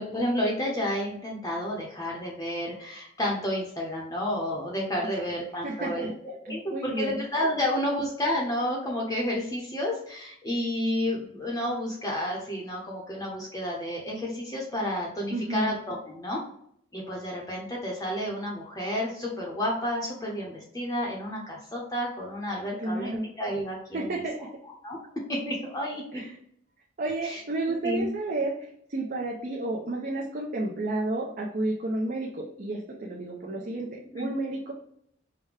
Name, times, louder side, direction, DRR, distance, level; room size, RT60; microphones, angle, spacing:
voice 1, 0.0-6.1 6.5-16.4 16.9-24.2 24.8-26.2 27.2-27.4 27.7-28.1 34.1-34.3, left 1 dB, 15° left, -3 dB, 0.7 m, -31 dB
voice 2, 5.6-7.2 15.3-15.7 22.8-23.3 23.9-24.5 26.1-26.3 27.0-28.5 28.9-34.7, right 2 dB, 45° right, -2 dB, 0.6 m, -31 dB
5.0 x 2.2 x 3.3 m, 0.69 s
head